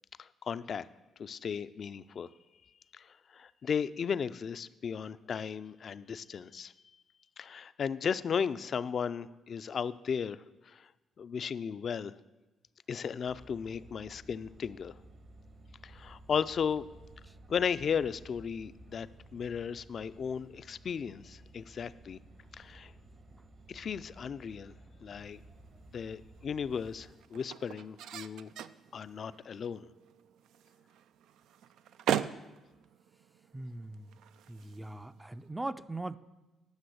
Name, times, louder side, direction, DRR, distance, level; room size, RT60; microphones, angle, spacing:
voice 1, 0.2-0.9 1.2-2.3 2.9-6.7 7.4-10.9 11.2-12.2 12.9-15.0 15.8-16.9 17.5-22.2 22.6-22.9 23.7-24.7 25.0-25.4 25.9-28.5 28.9-29.9, left 7 dB, 50° left, 14 dB, 0.4 m, -35 dB
sound 1, 13.3-27.1, right 1 dB, 60° right, 1.6 m, -55 dB
sound 2, 25.2-35.5, right 10 dB, 85° right, 0.3 m, -41 dB
voice 2, 33.5-34.2 34.5-36.2, right 2 dB, 15° right, 14 dB, 0.4 m, -41 dB
10.5 x 6.1 x 7.9 m, 1.1 s
cardioid pair, 90°, 0 cm